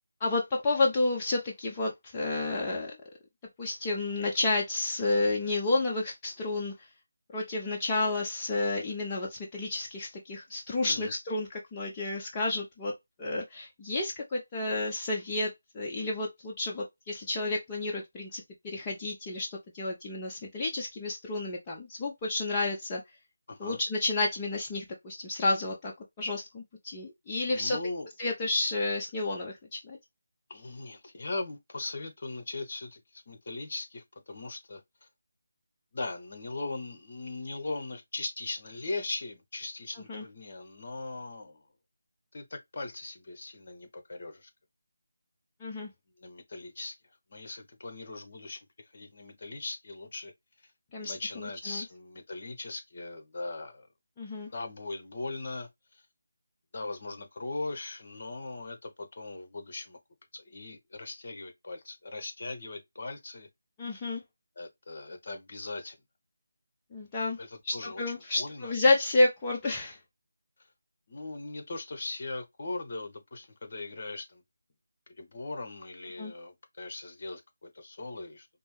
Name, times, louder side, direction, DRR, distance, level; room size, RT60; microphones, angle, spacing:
voice 1, 0.2-2.9 3.6-6.7 7.3-12.9 13.2-19.5 19.7-23.0 23.6-25.9 26.2-27.8 28.2-30.0 40.1-40.2 45.6-45.9 50.9-51.8 54.2-54.5 63.8-64.2 66.9-67.4 67.6-70.0 76.2-76.3, left 2 dB, 20° left, 0.7 m, -30 dB
voice 2, 10.8-11.1 23.5-23.8 27.5-28.1 30.5-35.1 35.9-41.6 42.3-44.5 46.2-46.9 47.3-50.3 51.0-53.9 54.5-55.7 56.7-60.0 60.3-63.5 64.6-66.0 67.4-68.7 71.1-74.4 75.2-78.5, left 2 dB, 50° left, 1.1 m, -39 dB
5.1 x 2.1 x 3.1 m
figure-of-eight pair, 160°, 0 cm